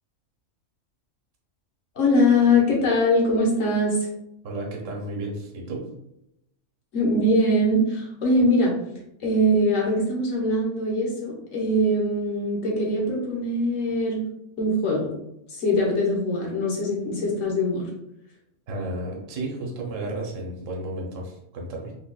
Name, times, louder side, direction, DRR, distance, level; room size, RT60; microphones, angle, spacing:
voice 1, 1.9-4.0 6.9-8.7 9.2-14.2 14.6-15.1 15.5-17.8, left 1 dB, 70° left, -3 dB, 1.4 m, -22 dB
voice 2, 4.4-5.9 18.7-21.9, right 2 dB, 70° right, 0 dB, 1.1 m, -32 dB
4.1 x 2.8 x 2.2 m, 0.82 s
omnidirectional pair, 1.4 m